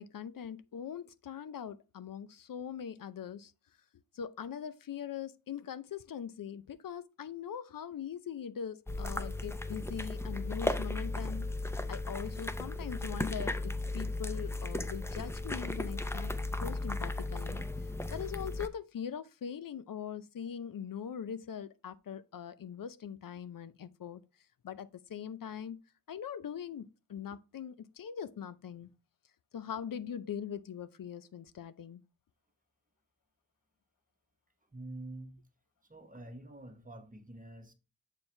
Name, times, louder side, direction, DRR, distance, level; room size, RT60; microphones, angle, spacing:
voice 1, 0.0-3.5 4.1-11.5 11.9-16.3 16.6-17.7 18.1-24.2 24.6-25.8 26.1-28.9 29.5-32.0, left 8 dB, 70° left, 0.6 m, -41 dB
sound 1, 8.9-18.7, left 2 dB, 10° left, 0.5 m, -36 dB
voice 2, 34.7-35.4 35.9-37.7, right 2 dB, 25° right, 1.1 m, -47 dB
7.2 x 4.5 x 3.2 m
wide cardioid pair, 100°, 35 cm